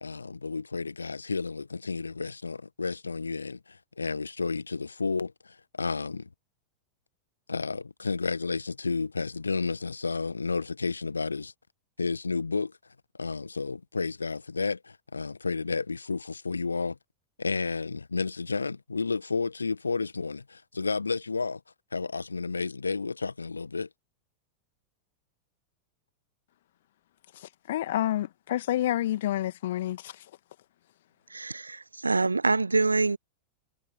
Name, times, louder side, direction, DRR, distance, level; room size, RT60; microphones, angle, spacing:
voice 1, 0.0-6.3 7.5-11.5 12.0-12.7 13.2-17.0 17.4-21.6 21.9-23.9, left 4 dB, 80° left, 1.7 m, -31 dB
voice 2, 27.3-30.3, left 13 dB, 55° left, 2.3 m, -29 dB
voice 3, 31.3-33.2, right 3 dB, 80° right, 0.6 m, -25 dB
figure-of-eight pair, 90°, 0 cm